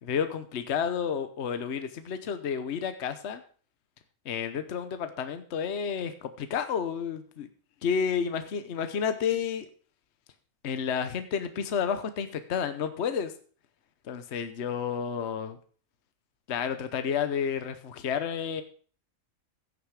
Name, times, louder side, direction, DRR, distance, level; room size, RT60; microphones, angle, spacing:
voice 1, 0.0-3.4 4.2-7.5 7.8-9.7 10.6-13.3 14.1-15.6 16.5-18.6, left 7 dB, 55° left, 9 dB, 1.1 m, -31 dB
15.5 x 6.7 x 4.8 m, 0.43 s
omnidirectional pair, 1.5 m